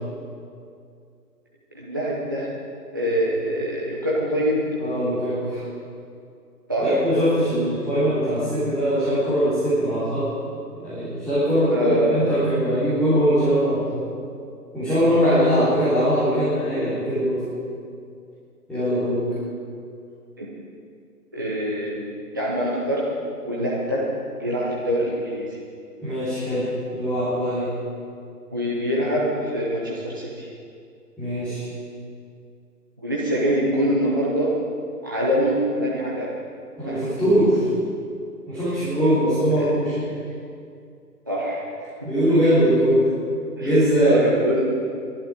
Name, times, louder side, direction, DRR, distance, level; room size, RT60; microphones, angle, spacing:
voice 1, 1.7-2.5 2.9-4.6 6.7-7.0 11.7-12.3 15.2-15.4 20.4-20.5 21.3-22.0 22.3-23.1 23.4-24.1 24.4-25.5 28.5-30.5 33.0-34.6 35.0-36.3 36.9-37.0 39.6-39.7 41.3-41.6 43.6-44.7, equal, 15° right, -5 dB, 0.7 m, -24 dB
voice 2, 4.8-5.6 6.8-10.3 10.8-14.0 14.7-17.4 18.7-19.2 26.0-27.7 31.2-31.7 36.8-37.7 38.5-40.1 42.0-43.1 43.6-44.1, equal, ahead, -15 dB, 3.4 m, -21 dB
23.5 x 11.0 x 5.0 m, 2.4 s
figure-of-eight pair, 150°, 48 cm